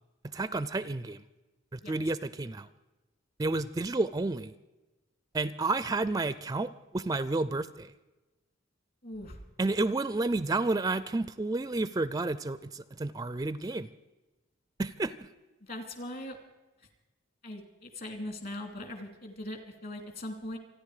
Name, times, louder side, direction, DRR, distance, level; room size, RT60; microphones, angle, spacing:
voice 1, 0.2-1.2 1.7-2.7 3.4-4.5 5.3-7.9 9.6-13.9 14.8-15.3, right 2 dB, 20° right, 16 dB, 0.4 m, -31 dB
voice 2, 9.0-9.4 15.6-16.4 17.4-20.6, left 1 dB, 50° left, 7 dB, 2.7 m, -40 dB
27.5 x 10.0 x 4.9 m, 1.1 s
head